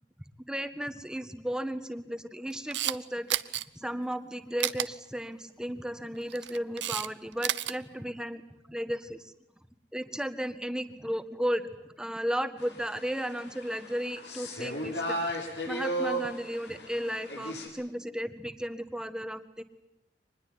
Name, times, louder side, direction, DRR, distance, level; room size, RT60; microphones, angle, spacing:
voice 1, 0.5-8.4 8.7-9.3 9.9-11.7 12.0-15.2 15.7-19.6, equal, 5° right, 9 dB, 1.7 m, -34 dB
Camera, 2.5-3.0 3.3-3.6 4.6-4.9 6.2-7.1 7.3-7.7, right 12 dB, 90° right, 0.9 m, -30 dB
sound 1, 12.6-17.7, right 1 dB, 80° left, 7.7 m, -35 dB
25.5 x 20.5 x 9.5 m, 0.85 s
head